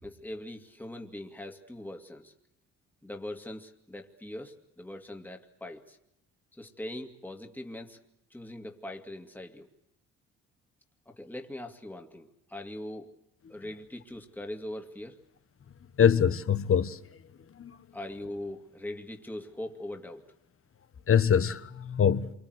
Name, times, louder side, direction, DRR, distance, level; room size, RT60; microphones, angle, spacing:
voice 1, 0.0-2.3 3.0-6.0 6.5-8.0 8.3-9.7 11.1-13.2 13.5-15.2 17.9-20.3, left 1 dB, 5° left, 2.6 m, -41 dB
voice 2, 16.0-17.0 17.6-17.7 21.1-22.3, left 8 dB, 45° left, 1.4 m, -23 dB
27.5 x 25.5 x 8.1 m
cardioid pair, 85°, 31 cm